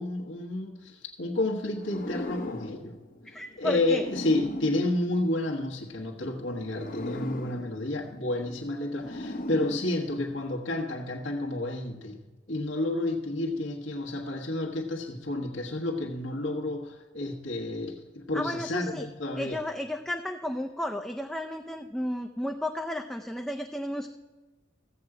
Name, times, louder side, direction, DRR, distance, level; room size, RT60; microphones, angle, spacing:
voice 1, 0.0-3.0 3.3-12.2 12.5-19.6, left 2 dB, 75° left, 1.4 m, -30 dB
sound 1, 1.7-5.9 6.6-10.5, left 1 dB, 45° left, 0.8 m, -39 dB
voice 2, 3.2-4.0 18.3-19.0 19.4-24.1, left 1 dB, 5° left, 0.5 m, -33 dB
15.0 x 7.8 x 4.8 m
head